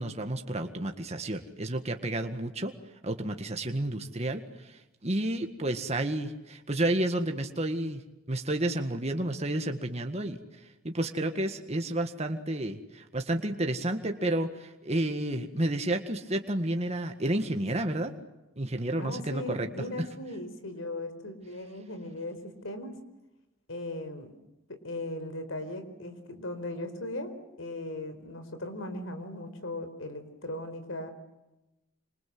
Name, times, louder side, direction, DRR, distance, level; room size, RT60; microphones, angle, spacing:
voice 1, 0.0-2.7 3.0-8.0 8.3-10.4 10.8-18.1 18.6-19.7 20.0-20.1, right 1 dB, 30° right, 5 dB, 1.8 m, -31 dB
voice 2, 19.0-22.9 23.7-24.3 24.8-31.1, left 1 dB, 80° left, 9 dB, 4.6 m, -38 dB
27.5 x 26.5 x 7.9 m, 0.98 s
head